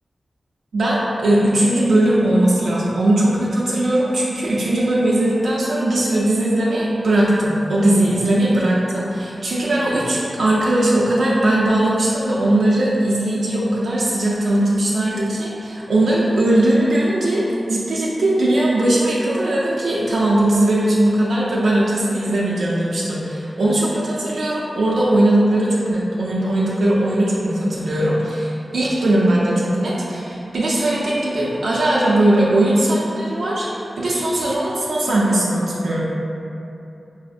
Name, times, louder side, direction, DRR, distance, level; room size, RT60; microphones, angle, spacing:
voice 1, 0.7-36.0, right 1 dB, 75° right, -7 dB, 0.4 m, -19 dB
4.7 x 2.0 x 2.5 m, 2.8 s
wide cardioid pair, 140°, 0 cm